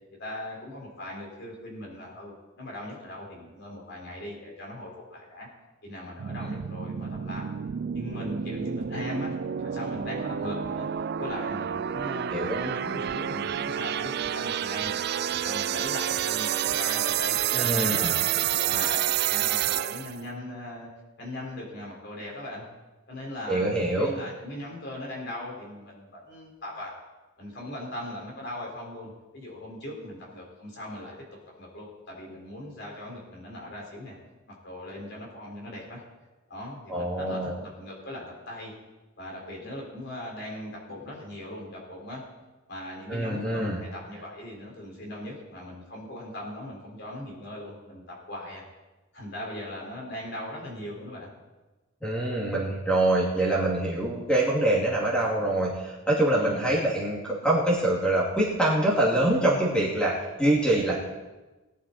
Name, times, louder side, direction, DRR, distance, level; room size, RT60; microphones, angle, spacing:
voice 1, 0.2-5.5 5.8-7.4 7.9-10.9 11.2-15.0 15.3-18.2 18.5-20.9 21.2-22.6 23.1-26.9 27.4-31.2 31.6-34.2 34.6-36.0 36.5-38.7 39.2-42.2 42.7-48.6 49.1-51.3 56.4-56.7, left 1 dB, 55° left, -2 dB, 4.8 m, -39 dB
sound 1, 6.2-20.2, right 10 dB, 50° right, 0.3 m, -29 dB
voice 2, 17.5-18.1 23.5-24.1 36.9-37.5 43.1-43.8 52.0-60.9, right 1 dB, 5° left, -5 dB, 2.4 m, -25 dB
19.5 x 11.0 x 4.2 m, 1.1 s
head